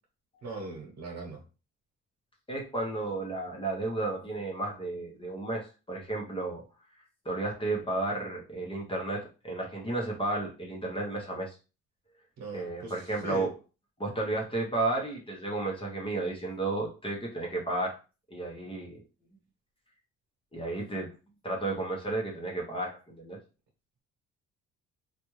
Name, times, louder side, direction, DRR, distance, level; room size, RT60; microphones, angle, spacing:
voice 1, 0.4-1.4 12.4-12.9 13.2-13.5, right 3 dB, 65° right, 0 dB, 1.2 m, -39 dB
voice 2, 2.5-6.6 7.2-11.6 12.5-13.5 14.0-18.0 18.3-19.0 20.5-21.1 21.4-23.4, right 2 dB, 20° left, -1 dB, 1.0 m, -33 dB
3.3 x 2.5 x 3.1 m, 0.32 s
cardioid pair, 90°, 30 cm